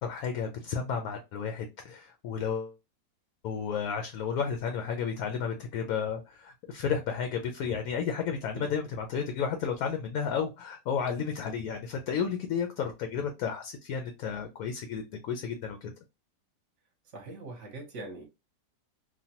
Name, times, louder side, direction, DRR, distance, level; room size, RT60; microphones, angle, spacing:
voice 1, 0.0-2.7 3.4-15.9, left 6 dB, 70° left, 0.9 m, -32 dB
voice 2, 17.1-18.3, right 2 dB, 50° right, 1.0 m, -42 dB
3.1 x 2.2 x 2.8 m
omnidirectional pair, 1.8 m